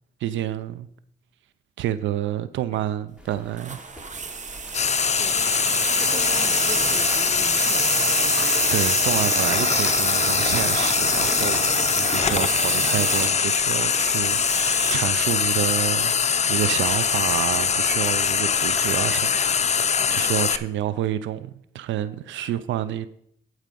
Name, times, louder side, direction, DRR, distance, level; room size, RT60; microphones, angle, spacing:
voice 1, 0.2-0.9 1.8-3.8 8.7-16.1 16.5-23.1, right 12 dB, 75° right, 0.5 m, -29 dB
sound 1, 3.2-20.6, equal, 5° right, 2.2 m, -43 dB
sound 2, 3.6-15.1, right 5 dB, 40° right, 1.0 m, -28 dB
Frying (food), 4.7-20.6, left 6 dB, 35° left, 0.6 m, -22 dB
voice 2, 6.0-8.1 20.2-20.3, left 2 dB, 15° left, 1.2 m, -41 dB
14.0 x 4.8 x 5.3 m
supercardioid pair, 60°, 20 cm